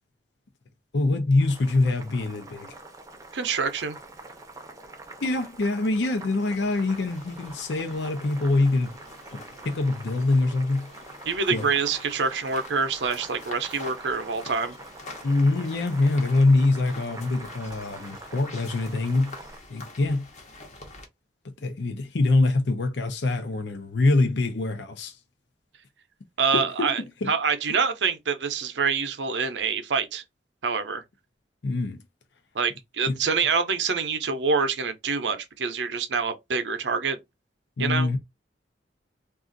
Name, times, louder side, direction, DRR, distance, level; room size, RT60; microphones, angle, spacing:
voice 1, 0.9-2.7 5.2-8.9 9.3-9.4 9.6-10.9 11.5-11.7 15.2-19.4 19.7-20.2 21.6-25.2 26.5-26.9 27.2-27.3 31.6-32.0 33.0-33.2 37.8-38.2, left 2 dB, 75° left, 0.6 m, -24 dB
Boiling, 1.4-19.6, right 2 dB, 20° right, 0.5 m, -45 dB
voice 2, 3.3-4.0 11.3-14.8 26.4-27.0 27.3-30.2 30.6-31.0 32.5-37.2 37.8-38.1, right 5 dB, 85° right, 0.6 m, -26 dB
sound 1, 6.4-21.0, left 2 dB, 40° left, 0.8 m, -46 dB
2.4 x 2.4 x 3.8 m
head